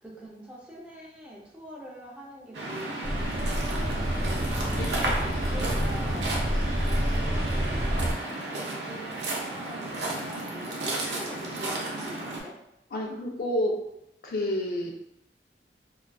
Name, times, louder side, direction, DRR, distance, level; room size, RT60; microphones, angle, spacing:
voice 1, 0.0-6.4 6.8-9.0 9.4-12.5 14.8-14.9, equal, 5° right, -4 dB, 0.4 m, -44 dB
Waves surf, 2.5-12.4, right 2 dB, 75° right, 0.5 m, -33 dB
sound 1, 3.0-8.1, equal, 45° right, 1.0 m, -28 dB
voice 2, 12.9-13.8 14.2-14.9, left 1 dB, 55° left, 0 dB, 0.4 m, -29 dB
2.4 x 2.3 x 2.2 m, 0.83 s
head